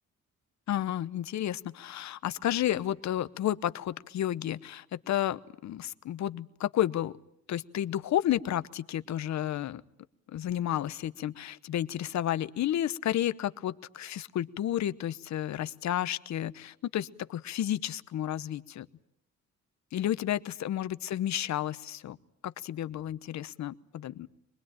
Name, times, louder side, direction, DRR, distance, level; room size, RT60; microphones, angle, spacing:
voice 1, 0.7-7.1 7.5-9.8 10.3-18.9 19.9-22.2 22.4-24.3, left 12 dB, 65° left, 14 dB, 1.0 m, -31 dB
25.0 x 20.5 x 8.9 m, 0.73 s
cardioid pair, 90°, 30 cm